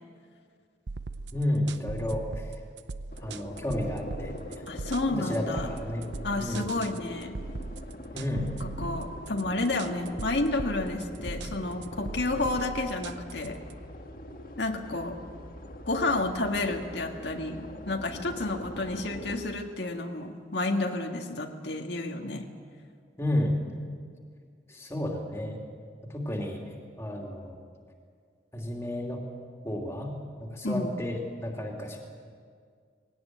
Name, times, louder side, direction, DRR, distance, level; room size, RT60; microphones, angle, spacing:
sound 1, 0.9-13.7, right 3 dB, 85° right, 0.7 m, -39 dB
voice 1, 1.3-2.5 3.2-4.6 5.2-6.0 6.4-6.7 8.1-8.5 23.2-23.6 24.7-25.6 26.1-26.6 27.0-27.6 28.5-29.2 29.6-30.1 30.4-32.0, left 1 dB, 15° left, 0 dB, 2.9 m, -31 dB
sound 2, 3.1-19.4, left 1 dB, 50° left, 1.7 m, -43 dB
voice 2, 4.7-5.7 6.2-7.4 8.6-13.6 14.6-15.2 15.9-22.5 30.6-31.0, left 2 dB, 80° left, 3 dB, 1.7 m, -30 dB
20.0 x 17.5 x 9.3 m, 2.1 s
head